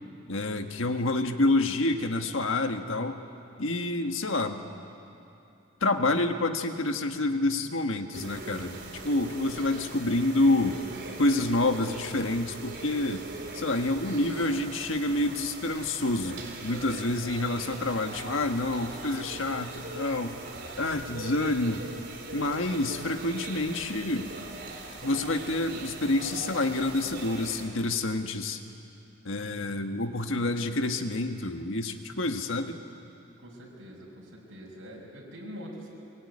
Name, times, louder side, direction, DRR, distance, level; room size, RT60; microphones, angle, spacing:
voice 1, 0.3-3.2 3.6-4.6 5.8-10.8 11.2-13.2 13.5-20.4 20.8-21.9 22.3-24.3 25.0-28.6 29.2-32.8, left 2 dB, 70° left, 6 dB, 1.5 m, -28 dB
sound 1, 8.1-27.7, right 2 dB, 55° right, 3.6 m, -41 dB
voice 2, 33.4-36.0, equal, 90° right, -4 dB, 5.7 m, -44 dB
23.0 x 22.5 x 9.7 m, 2.8 s
head